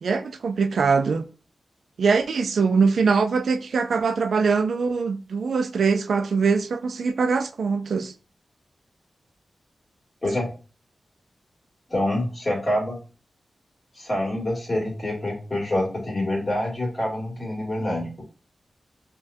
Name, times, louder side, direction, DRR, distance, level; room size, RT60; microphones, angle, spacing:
voice 1, 0.0-1.3 2.0-8.1, right 5 dB, 80° right, 0.3 m, -22 dB
voice 2, 11.9-13.0 14.0-18.2, left 1 dB, 30° left, 1.8 m, -26 dB
5.4 x 2.3 x 2.6 m
wide cardioid pair, 130°, 0 cm